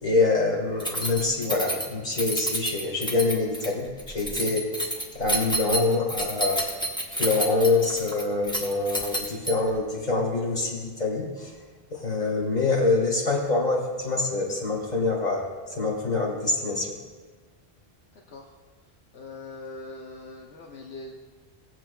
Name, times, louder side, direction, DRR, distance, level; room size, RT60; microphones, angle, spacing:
voice 1, 0.0-4.7 5.1-6.6 7.2-11.5 11.9-15.4 15.8-16.9, left 3 dB, 40° left, -2 dB, 2.2 m, -25 dB
Keys jangling, 0.8-9.8, right 1 dB, 5° left, 1.0 m, -30 dB
voice 2, 19.1-21.1, left 2 dB, 75° left, 0 dB, 1.1 m, -41 dB
22.0 x 7.5 x 2.3 m, 1.4 s
omnidirectional pair, 1.1 m